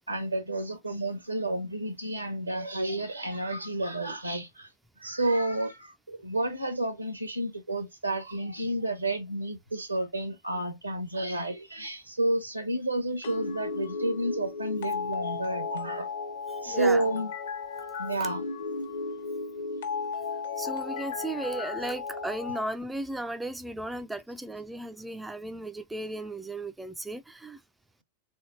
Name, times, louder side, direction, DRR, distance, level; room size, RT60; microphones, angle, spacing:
voice 1, 0.1-4.7 5.0-16.1 16.6-17.3 18.0-18.4, right 1 dB, 85° right, 1.2 m, -30 dB
sound 1, 13.2-22.6, left 4 dB, 60° left, 1.1 m, -35 dB
voice 2, 16.5-17.1 18.2-18.3 20.6-27.6, right 2 dB, 5° right, 0.4 m, -35 dB
3.7 x 3.5 x 2.7 m
figure-of-eight pair, 90°, 0 cm